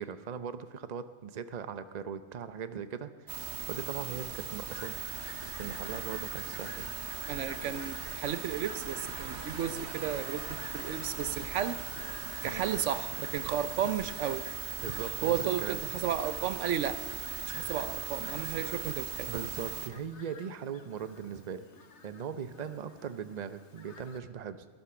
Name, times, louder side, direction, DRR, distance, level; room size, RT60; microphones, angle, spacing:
voice 1, 0.0-5.0 5.6-6.9 12.4-12.6 14.8-15.8 19.3-21.7 22.0-24.7, right 7 dB, 40° right, 11 dB, 0.8 m, -39 dB
sound 1, 3.3-19.9, right 7 dB, 65° right, 1.3 m, -39 dB
Fowl, 4.7-24.2, left 4 dB, 70° left, 1.7 m, -50 dB
voice 2, 7.3-11.8 12.4-14.4 15.2-17.0 17.5-19.3, right 8 dB, 85° right, 12 dB, 1.1 m, -33 dB
17.5 x 11.5 x 7.0 m, 1.4 s
omnidirectional pair, 1.2 m